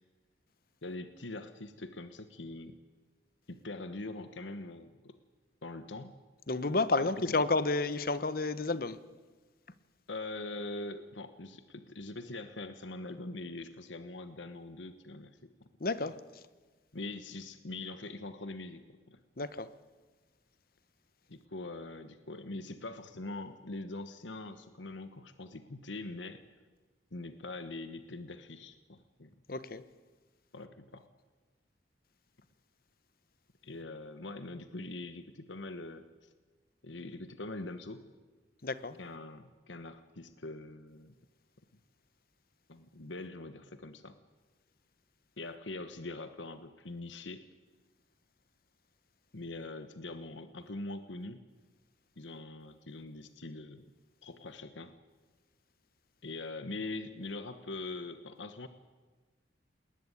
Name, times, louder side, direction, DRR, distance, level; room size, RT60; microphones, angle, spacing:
voice 1, 0.8-2.8 3.5-5.2 5.6-6.1 7.0-7.5 10.1-15.7 16.0-16.1 16.9-19.2 21.3-26.4 27.1-29.3 30.5-31.1 33.6-36.3 36.8-38.1 39.0-41.1 42.7-44.2 45.4-47.4 49.3-51.4 52.2-53.8 54.2-54.9 56.2-58.7, left 2 dB, 90° left, 10 dB, 1.2 m, -43 dB
voice 2, 6.5-9.0 15.8-16.1 19.4-19.7 29.5-29.8 38.6-39.0, left 3 dB, 50° left, 15 dB, 1.0 m, -31 dB
20.0 x 19.0 x 9.8 m, 1.3 s
head